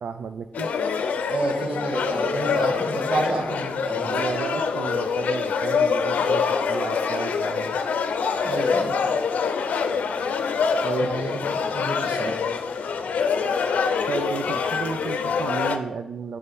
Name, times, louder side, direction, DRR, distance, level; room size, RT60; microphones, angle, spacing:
voice 1, 0.0-0.7 4.0-7.8 10.8-11.3 14.1-16.4, right 6 dB, 65° right, 9 dB, 0.3 m, -33 dB
sound 1, 0.5-15.8, left 5 dB, 80° left, 0.6 m, -25 dB
voice 2, 1.3-4.2 8.4-9.0 11.0-12.4, right 2 dB, 45° right, 1 dB, 1.6 m, -29 dB
8.5 x 6.6 x 3.5 m, 0.94 s
wide cardioid pair, 125°, 3 cm